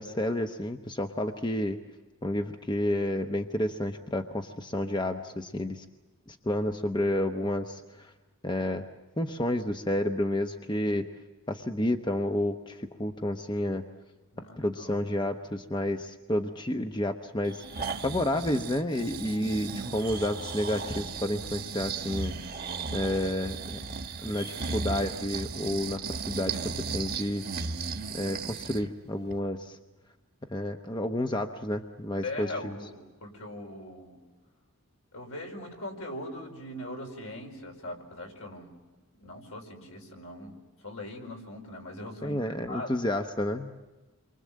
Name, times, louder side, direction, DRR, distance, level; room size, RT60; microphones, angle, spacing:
voice 1, 0.0-1.8 2.2-5.8 6.3-8.1 8.4-8.8 9.2-11.0 11.5-13.8 14.6-22.3 22.9-23.8 24.2-27.4 28.1-29.8 30.5-32.8 42.2-43.7, left 1 dB, 20° left, 5 dB, 0.8 m, -30 dB
voice 2, 14.3-15.0 19.7-19.9 32.2-34.2 35.1-38.7 39.2-40.5 40.8-43.0, left 1 dB, 70° left, 2 dB, 5.1 m, -41 dB
Breathing, 17.4-28.9 29.3-29.4, right 4 dB, 45° right, 1.3 m, -36 dB
29.0 x 24.0 x 7.5 m, 1.2 s
head